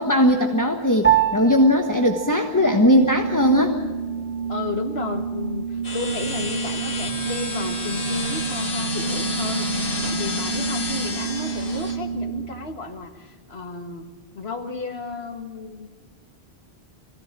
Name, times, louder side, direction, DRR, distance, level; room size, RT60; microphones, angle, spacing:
voice 1, 0.0-3.8, equal, 20° left, 3 dB, 1.4 m, -19 dB
Piano, 1.0-10.7, right 11 dB, 10° right, 1.4 m, -30 dB
Organ, 2.5-12.7, right 6 dB, 60° right, 3.0 m, -30 dB
voice 2, 4.5-14.1 14.3-15.9, left 4 dB, 75° left, 4 dB, 2.1 m, -33 dB
sound 1, 5.8-12.0, left 3 dB, 55° left, 2.7 m, -29 dB
25.0 x 17.0 x 7.6 m, 1.5 s
omnidirectional pair, 1.1 m